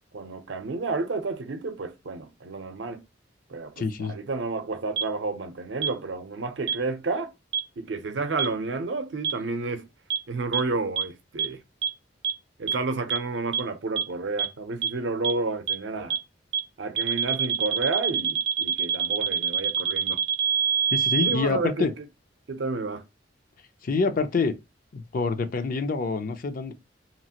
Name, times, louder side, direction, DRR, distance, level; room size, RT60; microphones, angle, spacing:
voice 1, 0.1-3.0 3.5-7.3 7.8-9.9 10.3-11.6 12.6-16.2 16.8-20.2 21.2-21.9 22.5-23.0, right 3 dB, 75° right, 0.5 m, -31 dB
voice 2, 3.8-4.2 20.9-21.9 23.8-24.5 24.9-26.7, left 4 dB, 50° left, 0.4 m, -26 dB
sound 1, 5.0-5.1 5.8-5.9 6.7-6.8 7.5-7.6 8.4-8.5 9.2-9.3 10.1-10.2 10.5-10.6 11.0-11.1 11.4-11.5 11.8-11.9 12.2-12.3 12.7-12.8 13.1-13.2 13.5-13.6 14.0-14.1 14.4-14.5 14.8-14.9 15.2-15.3 15.7-15.8 16.1-16.2 16.5-16.6 17.0-21.4, right 8 dB, 30° right, 0.5 m, -24 dB
2.9 x 2.4 x 2.8 m
head